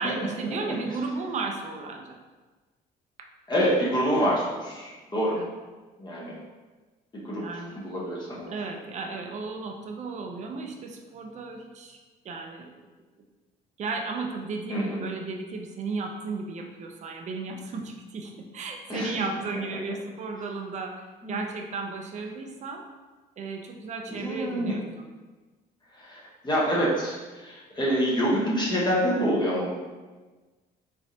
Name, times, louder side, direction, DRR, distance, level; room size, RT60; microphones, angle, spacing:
voice 1, 0.0-2.2 5.3-5.5 7.4-7.8 8.5-12.0 12.2-12.7 13.8-21.0 21.3-22.8 23.4-25.1, right 3 dB, 45° right, 2 dB, 0.6 m, -34 dB
voice 2, 3.5-5.4 6.0-6.4 7.1-8.5 14.7-15.1 18.9-19.2 21.2-21.4 24.1-24.8 25.9-29.7, equal, 25° left, -5 dB, 0.9 m, -27 dB
3.7 x 3.3 x 2.8 m, 1.3 s
cardioid pair, 110°, 17 cm